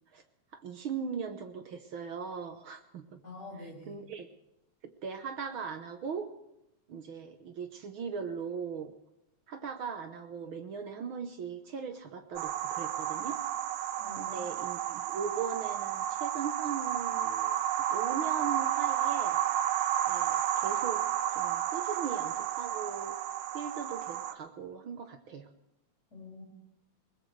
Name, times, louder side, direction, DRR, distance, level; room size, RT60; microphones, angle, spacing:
voice 1, 0.5-3.2 3.9-4.3 5.0-6.3 6.9-8.9 9.5-13.4 14.2-17.6 17.9-19.4 20.0-21.0 21.3-23.2 23.5-25.5, right 6 dB, 60° right, 7 dB, 1.4 m, -39 dB
voice 2, 3.2-4.0 14.0-14.4 26.1-26.4, left 2 dB, 20° left, -3 dB, 6.7 m, -46 dB
sound 1, 12.4-24.3, right 11 dB, 80° right, 2.1 m, -32 dB
21.5 x 20.0 x 3.3 m, 0.87 s
omnidirectional pair, 3.4 m